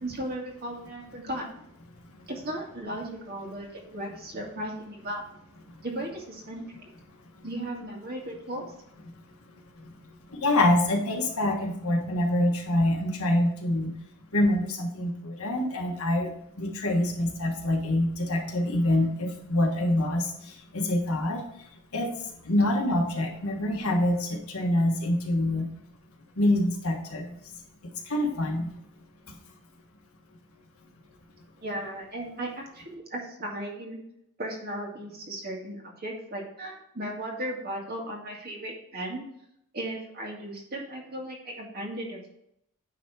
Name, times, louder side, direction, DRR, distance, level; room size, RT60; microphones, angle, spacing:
voice 1, 0.0-1.5 2.3-5.2 5.8-6.6 7.4-8.7 31.6-34.0 34.4-39.3 39.7-42.3, right 1 dB, 45° right, -1 dB, 1.9 m, -36 dB
voice 2, 10.3-13.9 14.3-16.3 16.6-21.4 21.9-22.1 22.4-25.6 26.4-27.3 28.1-28.7, left 1 dB, 70° left, 1 dB, 1.5 m, -25 dB
9.5 x 3.5 x 4.7 m, 0.76 s
head